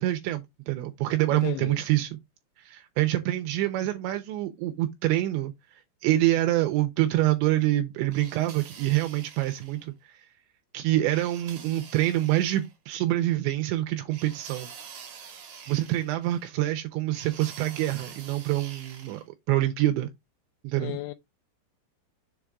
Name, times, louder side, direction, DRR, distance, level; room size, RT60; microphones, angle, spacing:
voice 1, 0.0-2.2 2.6-10.3 10.7-14.7 15.7-20.1 20.6-20.9, right 15 dB, 85° right, 2.8 m, -26 dB
voice 2, 1.3-1.8 20.8-21.1, left 20 dB, 85° left, 2.9 m, -34 dB
sound 1, 8.1-9.8 11.1-12.7 14.1-16.5 17.1-19.2, right 7 dB, 65° right, 1.8 m, -46 dB
7.3 x 3.5 x 5.0 m
omnidirectional pair, 5.6 m